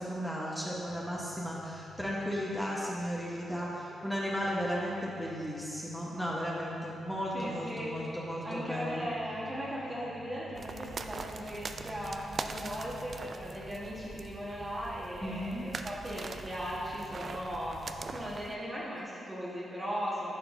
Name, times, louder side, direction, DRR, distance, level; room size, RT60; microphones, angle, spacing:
voice 1, 0.0-9.1 15.2-15.7, equal, 5° left, -5 dB, 1.1 m, -35 dB
sound 1, 0.7-18.2, left 1 dB, 90° left, 1.2 m, -53 dB
voice 2, 7.3-8.1 8.4-20.3, equal, 20° right, -7 dB, 1.4 m, -38 dB
sound 2, 10.6-18.5, right 4 dB, 50° right, 0.3 m, -42 dB
10.5 x 4.3 x 2.7 m, 2.7 s
supercardioid pair, 50°, 0 cm